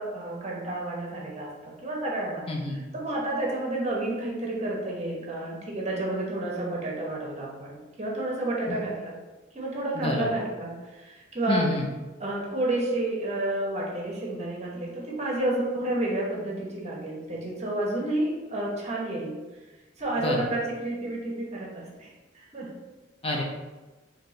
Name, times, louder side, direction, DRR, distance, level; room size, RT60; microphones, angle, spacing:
voice 1, 0.0-2.4 2.9-9.1 9.5-11.6 12.2-19.4 20.0-22.7, right 2 dB, 35° right, -3 dB, 0.9 m, -30 dB
voice 2, 9.9-10.3 11.5-11.8 20.2-20.5 23.2-23.4, left 2 dB, 30° left, -1 dB, 0.5 m, -28 dB
4.2 x 2.8 x 3.1 m, 1.2 s
head